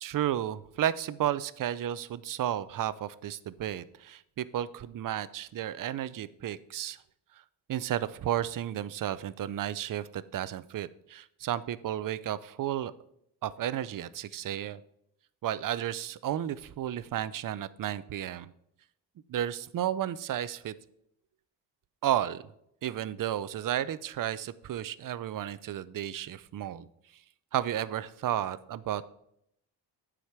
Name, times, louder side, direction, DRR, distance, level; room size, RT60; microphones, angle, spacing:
voice 1, 0.0-7.0 7.7-12.9 13.4-14.8 15.4-18.5 19.3-20.8 22.0-22.4 22.8-26.9 27.5-29.0, right 11 dB, 50° right, 16 dB, 0.6 m, -33 dB
9.5 x 5.0 x 5.9 m, 0.75 s
cardioid pair, 120°, 42 cm